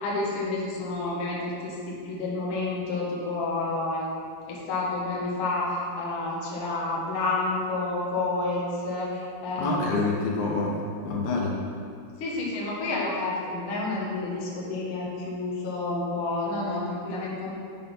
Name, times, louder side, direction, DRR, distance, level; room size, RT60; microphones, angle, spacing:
voice 1, 0.0-4.1 4.5-10.0 12.2-17.5, left 2 dB, 60° left, -5 dB, 1.4 m, -29 dB
voice 2, 9.6-10.7 11.1-11.6, left 3 dB, 75° left, -2 dB, 2.7 m, -27 dB
9.0 x 4.0 x 5.4 m, 2.3 s
omnidirectional pair, 4.3 m